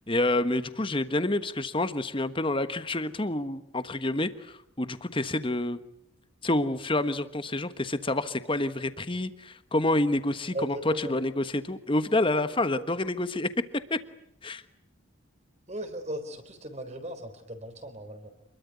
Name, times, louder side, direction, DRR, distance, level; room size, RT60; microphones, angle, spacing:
voice 1, 0.1-5.8 6.4-13.5 13.9-14.0 14.4-14.6, left 2 dB, 25° left, 12 dB, 1.3 m, -28 dB
voice 2, 10.5-11.1 12.8-12.9 15.7-18.3, right 1 dB, 35° right, 8 dB, 4.0 m, -37 dB
28.0 x 22.0 x 9.6 m, 0.77 s
head